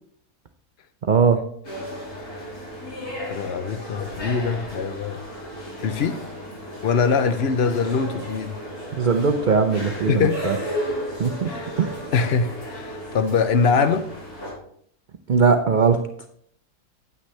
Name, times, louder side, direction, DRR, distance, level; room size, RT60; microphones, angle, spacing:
voice 1, 1.1-1.4 8.9-10.6 11.2-11.5 11.8-12.0 15.3-16.0, right 5 dB, 75° right, 7 dB, 0.4 m, -19 dB
sound 1, 1.6-14.5, equal, 85° left, 4.2 m, -34 dB
voice 2, 3.3-5.2 5.8-6.2 6.8-8.5 10.1-10.4 11.5-11.7 12.1-14.1, left 5 dB, 55° left, 10 dB, 0.8 m, -23 dB
9.5 x 8.9 x 3.3 m, 0.66 s
omnidirectional pair, 1.6 m